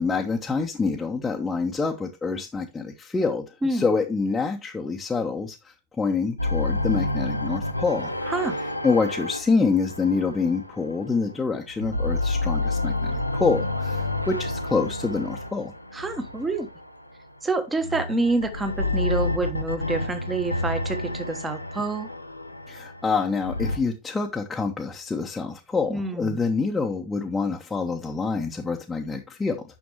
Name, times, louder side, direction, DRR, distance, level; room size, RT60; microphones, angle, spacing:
voice 1, 0.0-3.4 3.7-5.6 6.0-8.2 8.8-15.7 22.7-29.6, left 4 dB, 10° left, 1.0 m, -26 dB
sound 1, 6.4-11.3 11.7-17.0 17.8-23.8, left 2 dB, 85° left, 0.6 m, -29 dB
voice 2, 8.2-8.6 15.9-16.7 17.4-22.1 25.9-26.4, right 3 dB, 10° right, 1.2 m, -27 dB
9.3 x 6.3 x 3.0 m
figure-of-eight pair, 90°, 0 cm